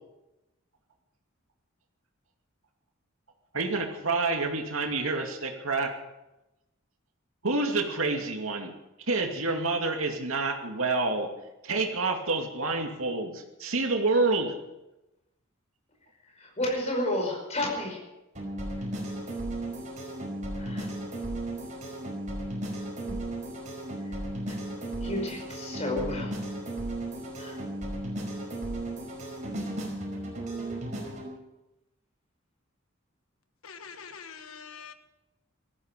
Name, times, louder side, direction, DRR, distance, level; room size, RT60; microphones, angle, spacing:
voice 1, 3.5-5.9 7.4-8.7 9.1-11.3 11.6-14.6, right 3 dB, 80° right, 3 dB, 2.4 m, -28 dB
voice 2, 16.2-18.0 18.8-18.9 20.6-20.9 23.0-23.2 24.1-24.2 24.5-24.6 25.0-26.4 27.4-27.6, left 1 dB, 30° left, 0 dB, 5.3 m, -32 dB
sound 1, 18.4-31.3, right 1 dB, 35° right, 5.1 m, -35 dB
voice 3, 33.6-34.9, left 6 dB, 80° left, 9 dB, 1.3 m, -44 dB
18.5 x 14.5 x 5.3 m, 0.97 s
head